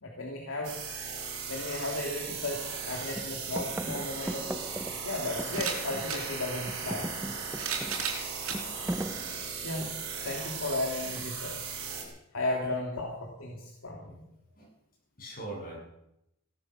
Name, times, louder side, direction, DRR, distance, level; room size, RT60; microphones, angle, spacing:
voice 1, 0.0-0.8 1.5-4.6 5.0-7.1 9.6-11.6 12.3-14.2, left 2 dB, 70° left, -1 dB, 2.7 m, -35 dB
sound 1, 0.6-12.0, right 5 dB, 65° right, 5.1 m, -37 dB
sound 2, 1.8-1.9 2.3-2.8 3.1-6.3 6.6-10.2 11.2-11.6, right 1 dB, 10° right, 0.5 m, -39 dB
sound 3, 5.4-6.2 7.2-8.6 9.4-9.5 10.7-10.8, right 6 dB, 85° right, 3.9 m, -34 dB
voice 2, 14.0-14.7 15.2-15.8, right 2 dB, 45° left, -2 dB, 7.5 m, -43 dB
16.5 x 13.0 x 6.3 m, 0.83 s
head